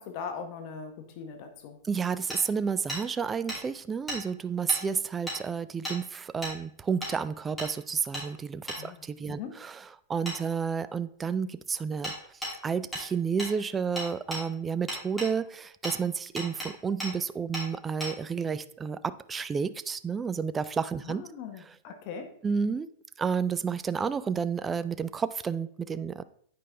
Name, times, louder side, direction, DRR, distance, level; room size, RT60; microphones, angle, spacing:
voice 1, 0.0-1.8 8.8-9.5 21.0-22.3, left 6 dB, 50° left, 6 dB, 1.0 m, -40 dB
voice 2, 1.8-12.1 12.6-21.2 21.6-21.7 22.4-22.9 23.2-26.2, right 6 dB, 15° right, 14 dB, 0.3 m, -31 dB
Hammer, 2.3-2.4 2.9-3.0 3.5-3.6 4.1-4.2 4.7-4.8 5.3-5.4 5.8-6.0 6.4-6.6 7.0-7.1 7.6-7.7 8.1-8.3 8.7-8.8 10.3-10.4 12.0-12.2 12.4-12.5 12.9-13.1 13.4-13.5 14.0-14.4 14.9-15.3 15.8-16.0 16.4-16.7 17.0-17.1 17.5-17.7 18.0-18.1, equal, 5° left, 2.6 m, -34 dB
8.8 x 5.1 x 3.3 m, 0.62 s
hypercardioid pair, 135°, 0 cm